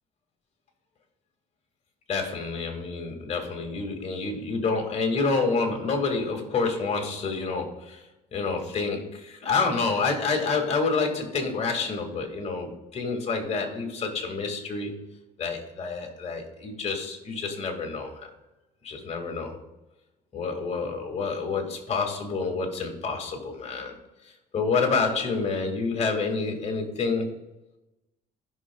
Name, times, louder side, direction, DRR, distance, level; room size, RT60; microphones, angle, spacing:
voice 1, 2.1-8.0 8.3-14.9 15.4-18.3 18.8-19.6 20.3-23.9 24.5-27.3, left 4 dB, 40° left, 3 dB, 2.1 m, -28 dB
16.0 x 5.9 x 2.3 m, 1.0 s
cardioid pair, 110°, 17 cm